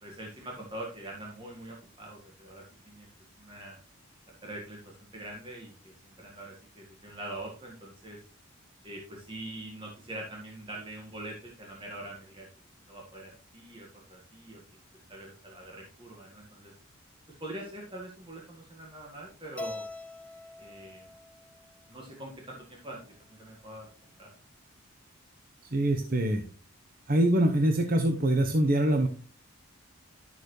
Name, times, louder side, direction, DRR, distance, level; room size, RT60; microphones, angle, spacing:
voice 1, 0.0-3.1 3.4-3.8 4.4-8.2 8.8-14.8 15.1-16.7 17.4-19.9 20.6-21.1 21.9-23.9 24.2-24.3, right 1 dB, 25° right, -2 dB, 1.6 m, -44 dB
Keyboard (musical), 19.6-21.9, left 2 dB, 5° left, 0.5 m, -43 dB
voice 2, 25.7-26.4 27.1-29.1, right 1 dB, 40° right, 5 dB, 0.9 m, -24 dB
12.0 x 6.7 x 3.2 m, 0.38 s
head